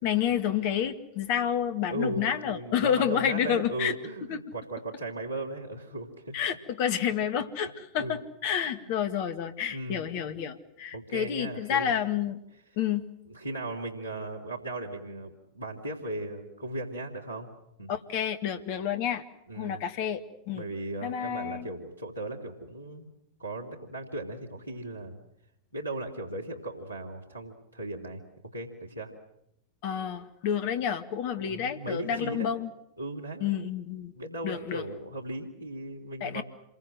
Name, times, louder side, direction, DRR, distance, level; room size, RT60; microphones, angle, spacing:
voice 1, 0.0-3.9 4.3-4.4 6.3-12.4 12.8-13.1 17.9-19.2 19.6-20.6 21.0-21.7 29.8-32.7 33.4-34.1 34.4-34.8 36.2-36.4, left 9 dB, 45° left, 10 dB, 2.1 m, -29 dB
voice 2, 1.9-6.3 8.0-8.2 8.8-8.9 9.7-10.0 10.9-11.9 13.3-17.5 17.8-18.0 19.5-19.8 20.5-23.1 23.4-25.2 25.7-28.2 28.5-29.1 31.4-32.5 33.0-33.5 34.1-36.4, right 2 dB, 90° left, 6 dB, 3.3 m, -37 dB
28.0 x 23.0 x 7.8 m, 0.77 s
figure-of-eight pair, 90°, 0 cm